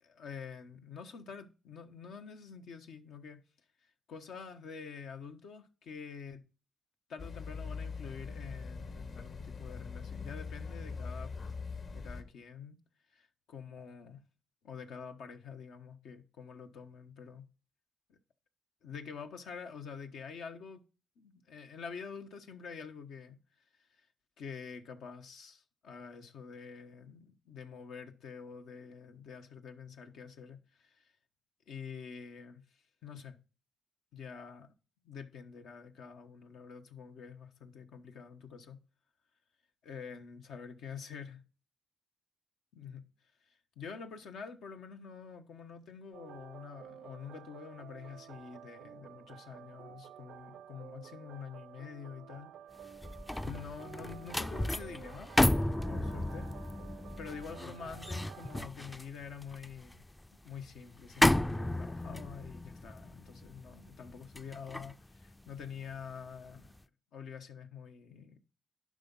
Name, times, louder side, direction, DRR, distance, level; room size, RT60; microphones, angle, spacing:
voice 1, 0.0-3.4 4.1-6.4 7.1-11.3 11.9-12.8 13.1-14.2 14.6-17.4 18.1-18.2 18.8-20.8 21.2-23.4 23.8-24.1 24.4-31.1 31.7-33.4 34.1-34.7 35.0-38.8 39.8-41.4 42.7-43.1 43.4-52.5 52.9-53.0 53.3-55.3 55.8-56.5 57.2-60.0 60.4-66.8 67.1-68.4, left 6 dB, 85° left, 1.2 m, -47 dB
sound 1, 7.2-12.2, left 5 dB, 60° left, 1.7 m, -42 dB
sound 2, 46.1-58.7, right 10 dB, 85° right, 0.4 m, -52 dB
sound 3, 52.8-66.1 66.5-66.8, left 1 dB, 15° left, 0.4 m, -33 dB
11.5 x 4.9 x 5.4 m
cardioid pair, 75°, 0 cm